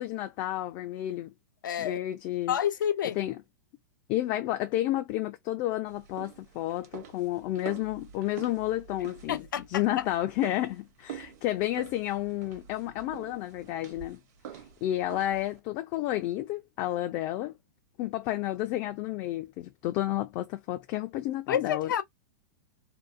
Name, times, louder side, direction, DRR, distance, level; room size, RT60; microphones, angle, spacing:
voice 1, 0.0-1.3 1.8-2.6 3.2-3.3 4.1-14.2 14.5-17.5 18.0-21.9, left 14 dB, 35° left, 0.3 m, -31 dB
voice 2, 1.6-2.0 2.5-3.2 9.3-9.8 21.5-22.0, left 9 dB, 90° left, 0.5 m, -29 dB
sound 1, 5.9-15.6, right 9 dB, 60° right, 0.8 m, -47 dB
2.6 x 2.1 x 2.4 m
hypercardioid pair, 145°, 10 cm